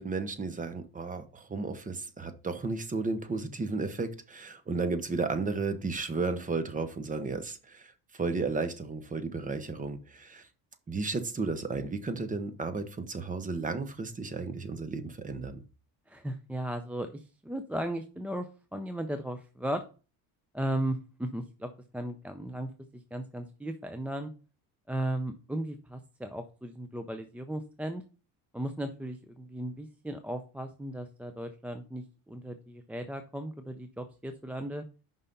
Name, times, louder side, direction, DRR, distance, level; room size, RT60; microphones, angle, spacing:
voice 1, 0.0-10.5 10.9-15.6, right 4 dB, 20° right, 10 dB, 0.9 m, -33 dB
voice 2, 16.1-19.8 20.5-24.3 24.9-28.0 28.5-34.9, right 1 dB, 5° right, 7 dB, 0.4 m, -36 dB
5.6 x 5.5 x 4.0 m, 0.34 s
cardioid pair, 120°, 37 cm